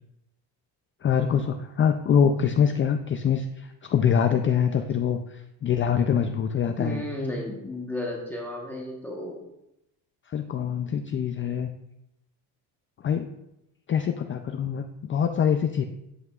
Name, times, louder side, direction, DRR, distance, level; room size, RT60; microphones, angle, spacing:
voice 1, 1.0-7.0 10.3-11.7 13.0-13.3 13.9-15.8, left 7 dB, 30° left, 6 dB, 0.4 m, -24 dB
voice 2, 6.7-9.5, left 1 dB, 5° left, -2 dB, 1.1 m, -33 dB
9.3 x 7.9 x 2.4 m, 0.87 s
cardioid pair, 110°, 43 cm